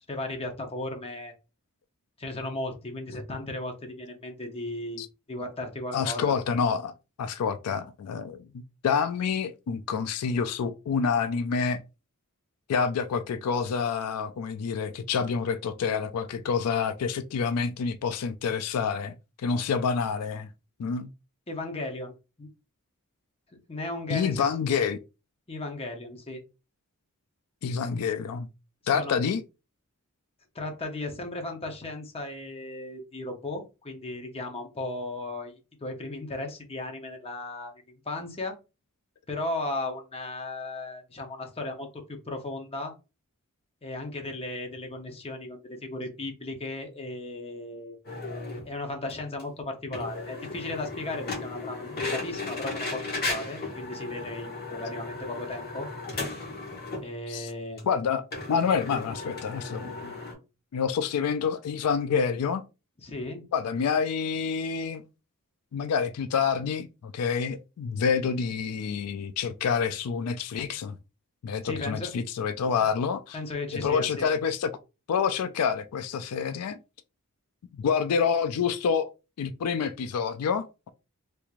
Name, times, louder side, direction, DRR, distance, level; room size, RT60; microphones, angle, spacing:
voice 1, 0.1-1.3 2.2-5.0 5.3-6.4 21.5-22.5 23.7-24.5 25.5-26.4 28.8-29.2 30.5-38.6 39.3-42.9 43.8-48.0 48.6-55.9 57.0-57.8 63.0-63.5 71.6-72.1 73.3-74.3, left 2 dB, 25° left, 0.8 m, -36 dB
voice 2, 5.9-6.9 7.2-11.8 12.7-20.5 20.8-21.1 24.1-25.0 27.6-28.5 28.9-29.4 57.3-57.5 57.8-60.1 60.7-62.6 63.5-65.0 65.7-71.0 71.4-73.4 73.7-74.7 75.1-76.8 77.8-79.1 79.4-80.9, left 6 dB, 85° left, 0.4 m, -28 dB
sound 1, 48.0-48.7 49.1-49.2 49.4-49.5 49.9-57.1 57.5-57.6 57.8-57.9 58.3-60.3, left 3 dB, 45° left, 1.4 m, -35 dB
3.4 x 3.1 x 2.4 m
head